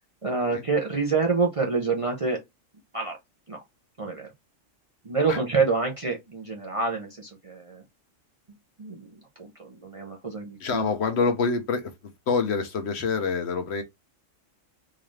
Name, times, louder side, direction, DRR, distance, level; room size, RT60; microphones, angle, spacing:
voice 1, 0.2-2.4 2.9-3.2 3.5-3.6 4.0-4.3 5.0-7.8 8.8-10.9, right 4 dB, 35° right, 0.6 m, -27 dB
voice 2, 10.6-11.9 12.3-13.8, left 4 dB, 60° left, 0.9 m, -26 dB
3.8 x 2.5 x 3.2 m
omnidirectional pair, 1.3 m